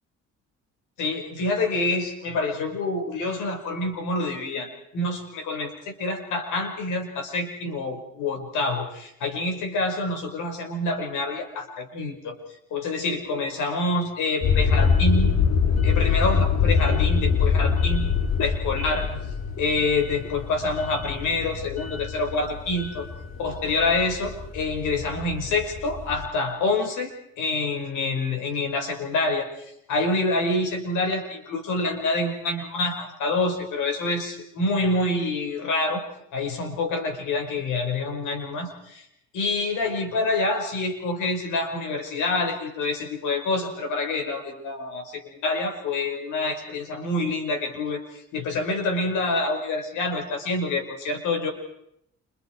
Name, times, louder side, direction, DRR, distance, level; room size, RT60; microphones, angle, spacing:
voice 1, 1.0-12.4 12.7-15.3 15.8-18.1 18.4-19.1 19.6-23.1 23.4-36.0 36.3-39.0 39.3-48.0 48.3-51.5, left 2 dB, 85° left, 4 dB, 5.7 m, -27 dB
sound 1, 14.4-26.3, left 6 dB, 55° left, 3.5 m, -24 dB
28.5 x 28.0 x 4.8 m, 0.78 s
cardioid pair, 90°, 30 cm